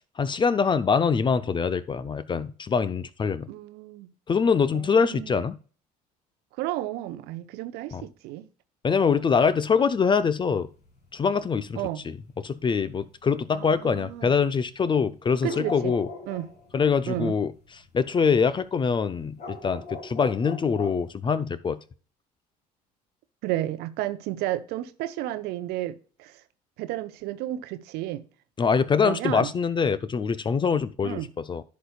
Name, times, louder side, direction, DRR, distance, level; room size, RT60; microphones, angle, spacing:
voice 1, 0.0-3.5 4.3-5.5 7.9-8.0 8.8-10.7 11.1-11.8 12.4-16.1 16.7-17.5 17.9-21.8 28.6-31.6, left 5 dB, 25° left, 0.6 m, -24 dB
voice 2, 3.5-4.1 4.7-5.3 6.6-8.5 11.7-12.0 13.5-14.3 15.4-16.0 16.3-16.5 17.1-17.4 23.4-26.4 26.8-28.2 29.0-29.5 31.0-31.3, right 14 dB, 55° right, 0.8 m, -32 dB
sound 1, 8.9-10.0 10.5-13.9 14.3-18.4 18.8-21.1, left 3 dB, 45° left, 3.3 m, -41 dB
15.0 x 5.2 x 2.3 m
figure-of-eight pair, 60°, 20 cm